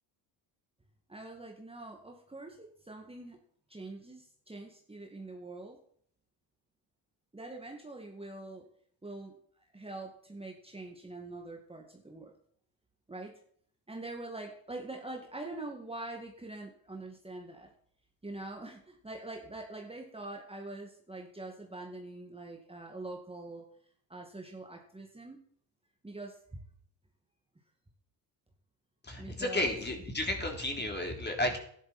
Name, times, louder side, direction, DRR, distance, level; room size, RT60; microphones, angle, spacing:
voice 1, 1.1-3.4 3.7-5.8 7.3-8.6 9.0-12.3 13.1-13.3 13.9-17.7 18.2-23.6 24.1-25.4 26.0-26.6 29.2-29.8, right 2 dB, 10° right, 0 dB, 2.2 m, -44 dB
voice 2, 29.0-31.6, left 1 dB, 20° left, 3 dB, 3.5 m, -32 dB
12.0 x 11.0 x 4.4 m, 0.62 s
supercardioid pair, 70°, 48 cm